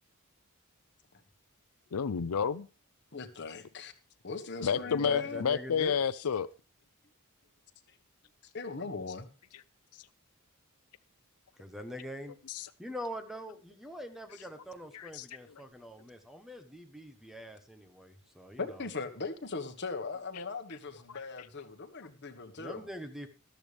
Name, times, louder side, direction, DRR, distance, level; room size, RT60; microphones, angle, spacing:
voice 1, 1.9-2.7 4.6-6.5 12.5-12.7 14.9-15.2 21.1-21.2, left 7 dB, 85° left, 0.5 m, -30 dB
voice 2, 3.1-3.9 4.2-5.5 8.5-9.3 18.6-22.9, left 4 dB, 50° left, 1.5 m, -39 dB
voice 3, 4.6-5.9 11.6-12.4 12.8-18.8 22.6-23.3, equal, ahead, 1.1 m, -44 dB
13.5 x 12.5 x 3.4 m
head